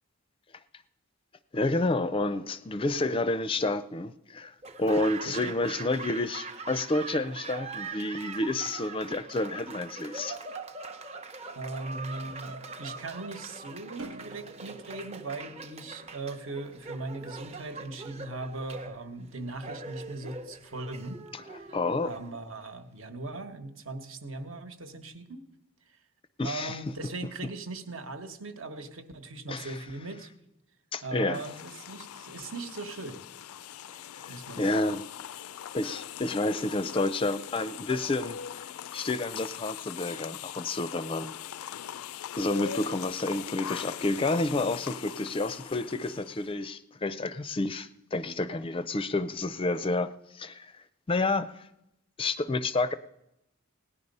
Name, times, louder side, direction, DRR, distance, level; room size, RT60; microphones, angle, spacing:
voice 1, 1.5-10.4 21.3-21.4 21.7-22.1 26.4-26.8 29.5-29.7 30.9-31.4 34.2-35.1 35.7-41.4 41.7-41.8 42.4-50.7 51.1-51.7 52.2-52.9, left 2 dB, 25° left, 0.4 m, -30 dB
Laughter / Applause, 4.6-22.7, right 4 dB, 30° right, 0.7 m, -42 dB
voice 2, 5.2-5.6 11.5-21.2 21.5-21.7 22.0-25.4 25.8-26.0 26.4-30.3 31.0-33.2 34.3-34.8, right 3 dB, 65° right, 1.2 m, -39 dB
sound 1, 14.0-16.5, right 2 dB, 85° right, 1.0 m, -48 dB
sound 2, 31.3-46.5, left 10 dB, 85° left, 0.4 m, -41 dB
17.0 x 10.0 x 5.4 m
head